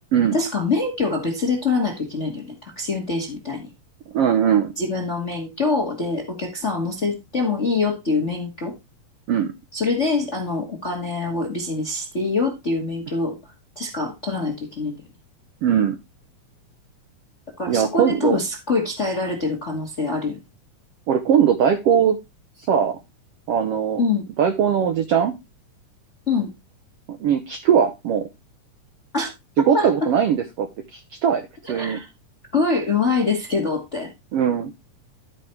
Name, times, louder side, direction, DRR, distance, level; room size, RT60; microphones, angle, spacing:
voice 1, 0.3-3.7 4.7-8.7 9.7-13.4 13.7-15.0 17.6-20.4 24.0-24.3 26.3-26.5 29.1-29.3 29.6-30.1 31.6-32.1 32.5-34.1, left 3 dB, 40° left, 1.0 m, -24 dB
voice 2, 4.1-4.7 9.3-9.5 15.6-16.0 17.7-18.4 21.1-22.2 22.7-23.0 23.5-24.0 24.4-25.3 27.2-28.3 29.6-32.0 34.3-34.7, right 8 dB, 75° right, 1.4 m, -20 dB
12.0 x 4.9 x 4.3 m
omnidirectional pair, 3.7 m